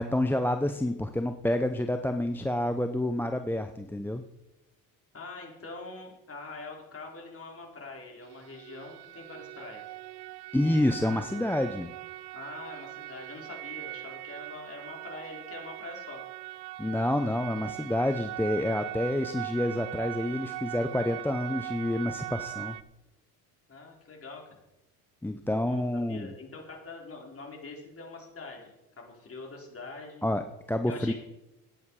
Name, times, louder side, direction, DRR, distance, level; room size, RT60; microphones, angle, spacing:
voice 1, 0.0-4.2 10.5-11.9 16.8-22.8 25.2-26.3 30.2-31.1, left 1 dB, 5° left, 7 dB, 0.7 m, -28 dB
voice 2, 5.1-9.8 12.3-16.2 23.7-24.6 25.6-30.2 30.9-31.1, left 3 dB, 30° left, 0 dB, 4.5 m, -44 dB
sound 1, 8.2-22.8, right 17 dB, 60° right, 0.7 m, -40 dB
14.0 x 9.7 x 4.8 m, 0.93 s
hypercardioid pair, 75°, 45 cm